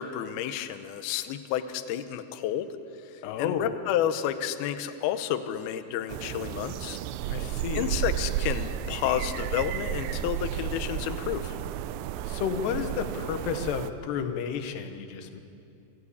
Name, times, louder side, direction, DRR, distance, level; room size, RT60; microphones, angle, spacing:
voice 1, 0.0-2.7 3.1-7.0 7.7-11.6, left 11 dB, 85° left, 10 dB, 2.1 m, -31 dB
voice 2, 3.2-3.7 7.3-8.0 12.2-15.4, left 7 dB, 70° left, 7 dB, 3.0 m, -32 dB
sound 1, 6.1-13.9, right 11 dB, 85° right, 2.4 m, -33 dB
27.0 x 14.0 x 8.4 m, 2.6 s
omnidirectional pair, 5.5 m